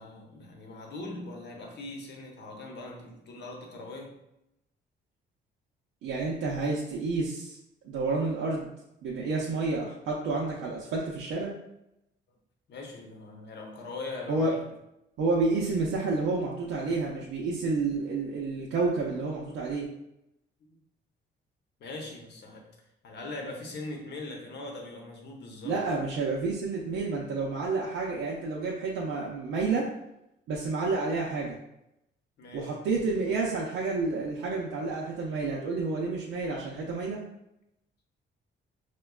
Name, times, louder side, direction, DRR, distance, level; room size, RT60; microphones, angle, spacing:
voice 1, 0.0-4.2 12.7-14.6 20.7-20.8 21.8-22.7 23.0-25.8 32.4-32.8, left 2 dB, 60° left, 1 dB, 0.8 m, -41 dB
voice 2, 6.0-7.6 7.8-8.7 9.0-11.5 14.3-14.5 15.2-19.9 25.6-29.9 30.5-31.6 32.5-37.2, right 3 dB, 85° right, -4 dB, 0.6 m, -30 dB
4.9 x 2.2 x 2.3 m, 0.85 s
cardioid pair, 90°, 20 cm